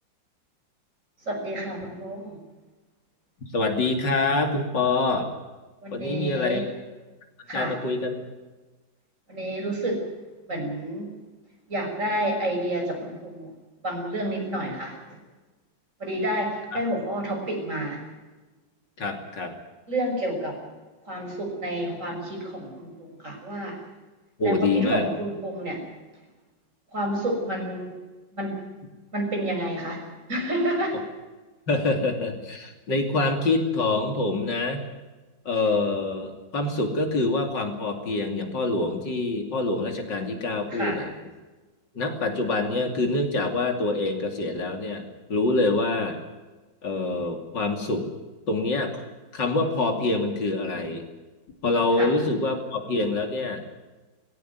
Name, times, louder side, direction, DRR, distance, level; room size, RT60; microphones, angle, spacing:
voice 1, 1.3-2.4 5.8-6.6 7.5-7.7 9.3-10.0 10.5-11.1 11.7-13.5 13.8-15.0 16.0-18.0 19.9-20.6 21.0-23.8 24.4-25.8 26.9-27.9 28.3-28.6 29.1-31.0 40.7-41.0 52.0-52.1, right 1 dB, 40° right, 1 dB, 6.6 m, -29 dB
voice 2, 3.5-5.3 5.9-6.6 7.5-8.2 16.7-16.8 19.0-19.5 24.4-25.1 31.7-34.8 35.4-41.1 41.9-45.0 45.3-46.2 46.8-48.1 48.5-49.0 49.3-51.0 51.6-53.6, left 2 dB, 70° left, 5 dB, 3.3 m, -25 dB
19.0 x 17.5 x 9.4 m, 1.2 s
omnidirectional pair, 2.0 m